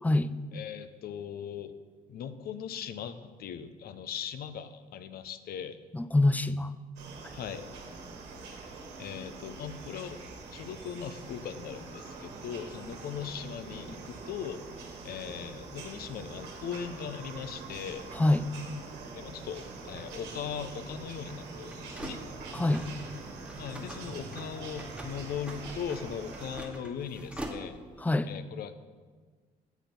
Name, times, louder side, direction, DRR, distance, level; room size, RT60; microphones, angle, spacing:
voice 1, 0.5-1.7 2.1-5.8 7.3-7.7 8.5-8.6 9.0-10.2 10.5-14.6 15.0-18.1 19.1-22.2 23.6-27.8 28.2-28.7, left 8 dB, 65° left, 12 dB, 0.5 m, -39 dB
voice 2, 5.9-6.7 18.2-18.5 22.5-22.8 28.0-28.3, left 2 dB, 10° left, 14 dB, 0.3 m, -25 dB
sound 1, 7.0-26.6, right 3 dB, 85° right, 1.3 m, -44 dB
sound 2, 17.4-28.0, right 1 dB, 5° right, 1.2 m, -46 dB
8.2 x 4.3 x 5.1 m, 1.5 s
supercardioid pair, 70°, 17 cm